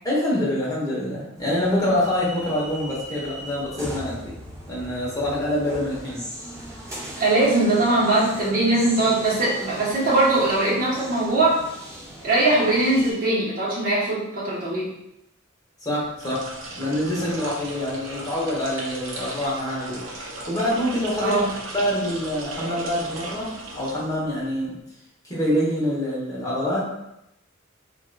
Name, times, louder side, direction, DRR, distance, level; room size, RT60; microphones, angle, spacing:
voice 1, 0.0-4.3 4.7-6.2 15.8-16.5 16.8-21.4 21.7-24.7 25.2-26.9, left 1 dB, 15° left, -6 dB, 0.9 m, -26 dB
sound 1, 1.4-13.1, equal, 15° right, 0.9 m, -39 dB
voice 2, 7.2-11.6 12.2-14.9 21.2-21.5, right 2 dB, 45° right, -7 dB, 1.0 m, -21 dB
sound 2, 16.1-24.5, right 2 dB, 80° right, 0.6 m, -36 dB
3.6 x 2.5 x 2.2 m, 0.85 s
head